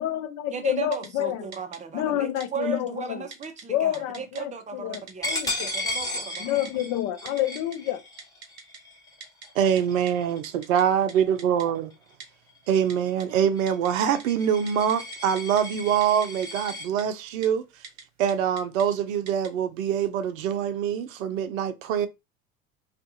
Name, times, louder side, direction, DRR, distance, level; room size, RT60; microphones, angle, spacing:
voice 1, 0.0-1.5 1.9-3.3 3.7-5.7 6.4-8.0, left 12 dB, 40° left, 0.5 m, -28 dB
voice 2, 0.5-6.5, right 6 dB, 15° right, 0.5 m, -36 dB
Typing, 0.9-1.1 1.5-1.8 2.4-2.5 3.3-3.6 3.9-4.4 4.9-5.1 5.4-5.9 6.3-6.7 7.3-7.8 8.2-8.8 9.2-9.5 9.8-9.9 10.1-10.2 10.4-10.8 11.1-11.2 11.4-11.7 12.2-12.3 12.9-13.3 13.7-14.2 14.5-15.6 16.0-16.7 17.0-17.1 17.4-17.5 17.8-18.0 18.3-18.8 19.3-19.5, right 5 dB, 40° right, 0.9 m, -43 dB
Coin (dropping), 5.2-10.6 11.1-11.4 11.7-16.9, left 1 dB, 10° left, 1.0 m, -35 dB
voice 3, 9.6-11.9 12.7-17.8 18.2-22.1, right 8 dB, 70° right, 0.6 m, -24 dB
2.5 x 2.3 x 2.6 m
hypercardioid pair, 75°, 42 cm